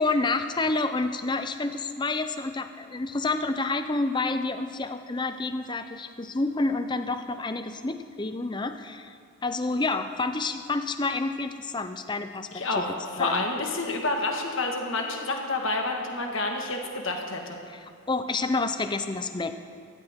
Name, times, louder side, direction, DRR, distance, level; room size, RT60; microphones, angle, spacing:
voice 1, 0.0-9.2 9.4-12.9 13.2-13.4 17.7-19.5, left 3 dB, 20° left, 8 dB, 0.5 m, -29 dB
voice 2, 12.5-17.6, left 2 dB, 55° left, 2 dB, 1.6 m, -29 dB
17.0 x 13.5 x 3.6 m, 2.2 s
head